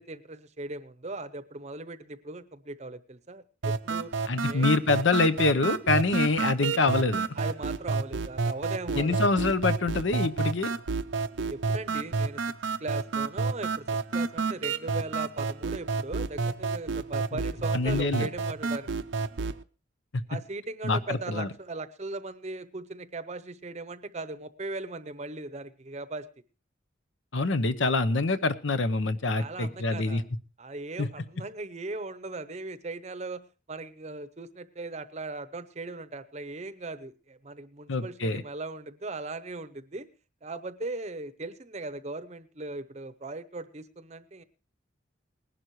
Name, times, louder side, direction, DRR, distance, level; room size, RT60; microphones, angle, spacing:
voice 1, 0.0-4.1 4.5-4.7 7.4-9.3 11.4-12.4 12.8-13.9 14.1-18.9 20.3-26.3 29.4-30.2 30.6-40.1 40.4-44.4, right 2 dB, 35° right, 14 dB, 0.7 m, -38 dB
sound 1, 3.6-19.6, right 4 dB, 75° right, 0.6 m, -30 dB
voice 2, 4.3-7.3 8.9-10.7 17.7-18.3 20.8-21.5 27.3-30.2 31.0-31.1 37.9-38.4, left 3 dB, 75° left, 13 dB, 0.9 m, -25 dB
19.5 x 11.5 x 3.1 m, 0.31 s
head